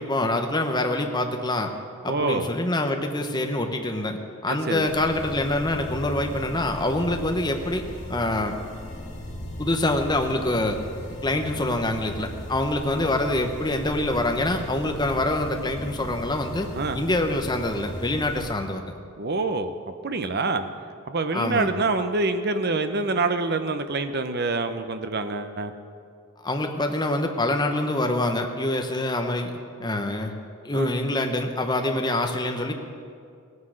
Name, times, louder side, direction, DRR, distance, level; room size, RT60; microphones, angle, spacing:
voice 1, 0.0-1.7 2.0-7.8 8.1-8.5 9.6-10.8 11.2-16.7 16.9-18.8 21.3-21.7 26.4-29.5 29.8-30.3 30.6-32.7, left 1 dB, 20° left, 4 dB, 1.0 m, -25 dB
voice 2, 2.1-2.5 4.5-4.9 16.8-17.0 19.2-19.7 20.0-20.7 21.1-25.7 30.7-30.9, right 3 dB, 50° right, 9 dB, 0.8 m, -26 dB
sound 1, 4.8-18.5, left 1 dB, 35° left, 1.8 m, -37 dB
17.0 x 9.6 x 6.4 m, 2.3 s
head